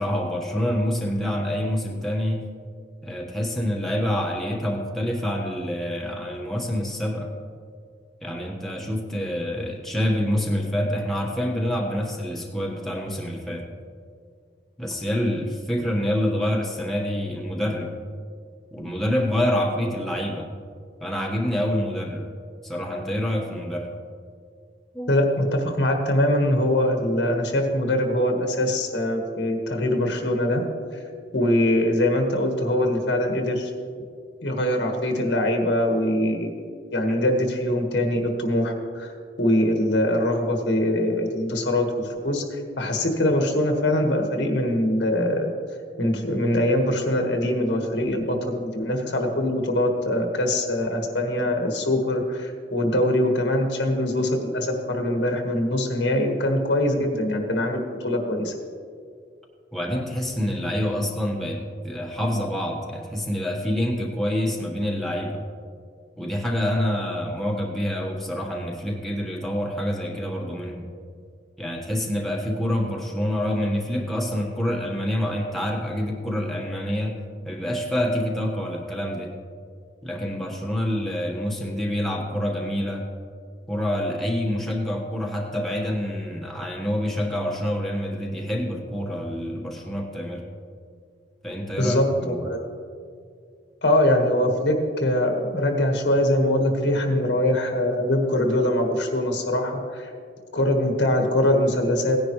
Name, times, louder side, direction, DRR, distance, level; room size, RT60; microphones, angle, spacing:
voice 1, 0.0-2.4 3.0-7.3 8.2-13.7 14.8-17.9 18.7-20.5 21.0-22.2 22.6-23.9 24.9-25.1 59.7-65.4 66.2-70.8 71.6-77.2 77.4-79.3 80.0-83.0 83.7-90.4 91.4-92.5, equal, ahead, -3 dB, 1.4 m, -27 dB
voice 2, 25.1-30.6 30.9-31.0 31.3-33.7 34.4-36.5 36.9-39.1 39.4-45.5 46.0-58.5 91.8-92.6 93.8-100.1 100.5-102.2, left 1 dB, 90° left, 2 dB, 1.6 m, -23 dB
17.5 x 10.0 x 3.2 m, 2.2 s
head